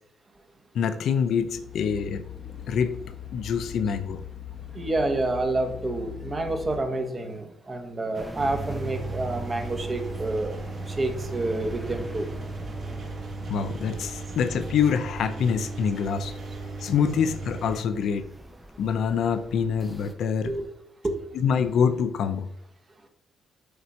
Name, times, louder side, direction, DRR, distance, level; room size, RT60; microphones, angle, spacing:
voice 1, 0.7-2.2 2.7-3.0 3.3-4.2 13.5-16.3 16.8-18.3 18.8-20.5 21.3-22.5, left 7 dB, 70° left, 0.6 m, -25 dB
sound 1, 1.4-6.8, left 9 dB, 50° left, 1.2 m, -40 dB
voice 2, 4.7-10.6 10.9-12.3 14.9-15.0 20.4-20.6 21.0-21.2, right 2 dB, 30° right, 1.1 m, -28 dB
sound 2, 8.1-20.1, right 1 dB, 5° right, 0.7 m, -43 dB
Engine, 8.4-17.8, right 3 dB, 50° right, 1.7 m, -36 dB
8.0 x 2.8 x 4.8 m
cardioid pair, 90°, 0 cm